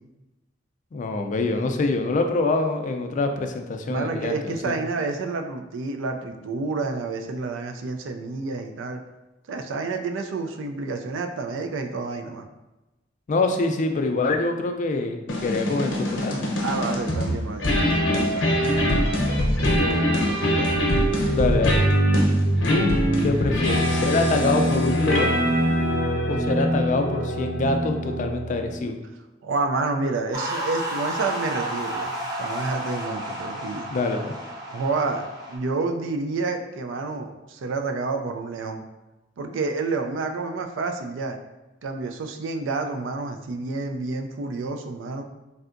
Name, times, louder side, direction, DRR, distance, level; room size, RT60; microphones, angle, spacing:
voice 1, 0.9-4.4 4.6-4.8 13.3-16.3 21.3-21.8 22.7-25.4 26.3-29.0 33.9-34.3, left 3 dB, 40° left, 5 dB, 0.3 m, -25 dB
voice 2, 3.8-9.0 9.5-12.5 16.6-19.9 20.2-20.8 29.4-33.9 34.7-38.8 39.4-41.4 41.8-45.2, right 3 dB, 90° right, 5 dB, 0.4 m, -29 dB
sound 1, 15.3-28.8, equal, 80° left, 0.7 m, -23 dB
sound 2, 30.3-35.6, right 1 dB, 20° right, 0.6 m, -32 dB
3.3 x 2.7 x 2.5 m, 1.0 s
head